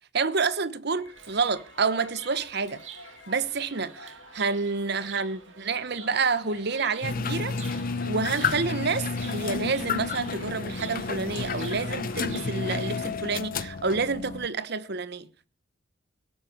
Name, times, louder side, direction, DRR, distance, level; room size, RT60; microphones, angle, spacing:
voice 1, 0.1-2.8 3.3-7.8 8.1-15.5, right 4 dB, 60° right, 1.1 m, -29 dB
sound 1, 1.0-13.6, left 3 dB, 75° left, 3.5 m, -51 dB
Chirp tweet, 1.1-12.9, right 8 dB, 85° right, 2.2 m, -47 dB
sound 2, 7.0-14.5, left 4 dB, 50° left, 0.7 m, -31 dB
18.0 x 7.5 x 8.6 m
head